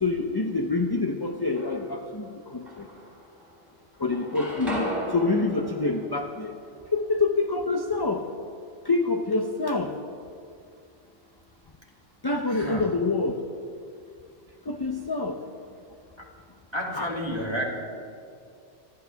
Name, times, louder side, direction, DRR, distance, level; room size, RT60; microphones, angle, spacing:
voice 1, 0.0-2.9 4.0-6.6 6.9-8.2 8.8-9.9 12.2-13.4 14.7-15.4 16.9-17.1, left 3 dB, 25° left, 4 dB, 0.7 m, -26 dB
sound 1, 1.2-2.1 2.7-3.7 3.9-7.9, equal, ahead, 4.5 m, -37 dB
voice 2, 12.5-12.9 16.7-17.6, equal, 25° right, -3 dB, 2.8 m, -30 dB
25.5 x 12.5 x 3.5 m, 2.4 s
omnidirectional pair, 1.2 m